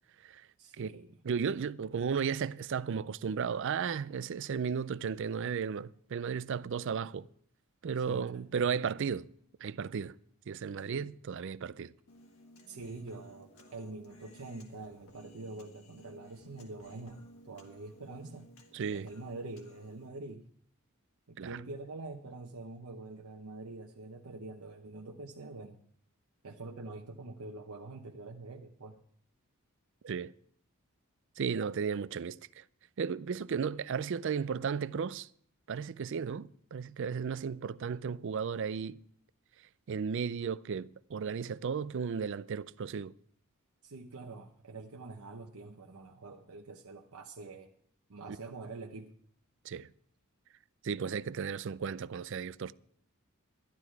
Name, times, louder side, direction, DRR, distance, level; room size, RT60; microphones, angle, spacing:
voice 1, 0.6-1.2 8.0-8.8 10.8-11.1 12.7-18.5 18.9-20.5 21.3-25.8 26.4-29.0 43.8-47.7 48.1-49.1, right 3 dB, 80° right, 0.9 m, -45 dB
voice 2, 1.2-7.3 7.8-9.3 9.6-10.1 10.5-11.9 18.7-19.1 21.4-21.6 30.0-30.3 31.4-32.6 33.0-35.3 35.7-39.0 39.9-43.1 49.6-49.9 50.8-52.7, right 6 dB, 55° right, 0.4 m, -34 dB
Human voice, 12.1-20.1, equal, 70° left, 1.7 m, -57 dB
12.0 x 11.5 x 4.6 m
head